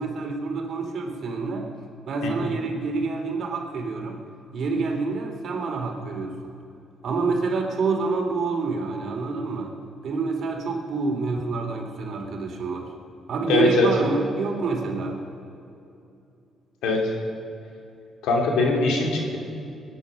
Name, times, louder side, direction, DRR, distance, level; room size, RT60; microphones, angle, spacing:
voice 1, 0.0-1.7 2.1-4.2 4.5-6.6 7.0-9.7 10.0-12.9 13.3-15.2, right 4 dB, 60° right, 2 dB, 2.7 m, -27 dB
voice 2, 13.5-13.9 16.8-17.0 18.2-19.4, left 3 dB, 90° left, 0 dB, 3.0 m, -22 dB
21.0 x 9.4 x 6.3 m, 2.7 s
cardioid pair, 90°, 0 cm